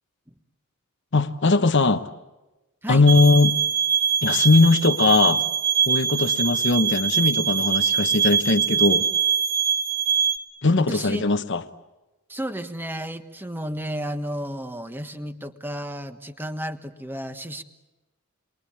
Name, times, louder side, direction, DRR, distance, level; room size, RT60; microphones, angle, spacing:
voice 1, 1.1-2.1 2.9-3.6 4.2-5.5 5.9-9.1 10.6-11.6, left 3 dB, 55° left, 9 dB, 1.1 m, -19 dB
sound 1, 3.1-10.4, right 7 dB, 55° right, 2.9 m, -23 dB
voice 2, 10.9-11.2 12.3-17.6, right 1 dB, 10° right, 8 dB, 1.4 m, -32 dB
29.0 x 23.0 x 8.6 m, 1.1 s
head